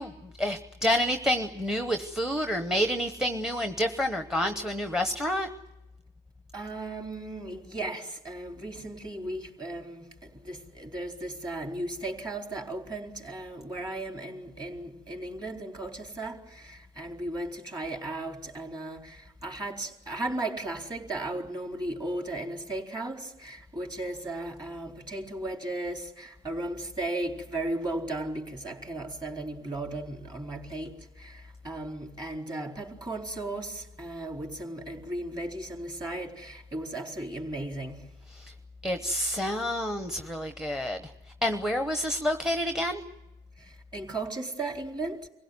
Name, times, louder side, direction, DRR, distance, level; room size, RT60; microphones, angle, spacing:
voice 1, 0.0-5.5 38.3-38.5 38.8-41.0 41.4-43.0, equal, 5° right, 0.9 m, -28 dB
voice 2, 6.5-38.1 43.6-45.3, right 2 dB, 25° right, 3.9 m, -36 dB
25.5 x 16.5 x 9.5 m
cardioid pair, 110°, 17 cm